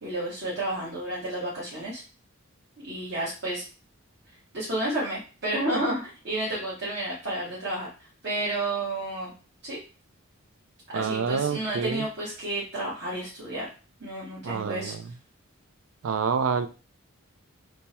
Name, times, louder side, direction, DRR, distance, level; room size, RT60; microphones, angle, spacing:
voice 1, 0.0-2.0 2.8-3.6 4.5-9.3 9.6-9.8 10.9-13.7 14.0-14.9, right 1 dB, 50° right, -7 dB, 1.3 m, -31 dB
voice 2, 10.9-12.1 14.4-15.0 16.0-16.7, right 6 dB, 70° right, 10 dB, 0.4 m, -27 dB
3.3 x 2.1 x 4.2 m, 0.35 s
head